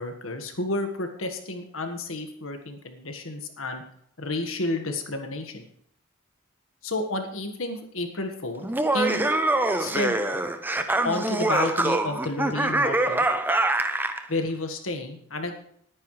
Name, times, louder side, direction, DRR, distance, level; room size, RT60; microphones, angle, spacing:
voice 1, 0.0-3.8 4.2-5.7 6.8-8.6 8.9-9.2 9.8-10.2 11.0-13.2 14.3-15.6, left 2 dB, 75° left, 5 dB, 1.7 m, -31 dB
Laughter, 8.6-14.2, right 2 dB, 10° right, 0.7 m, -24 dB
19.5 x 9.7 x 3.3 m, 0.66 s
head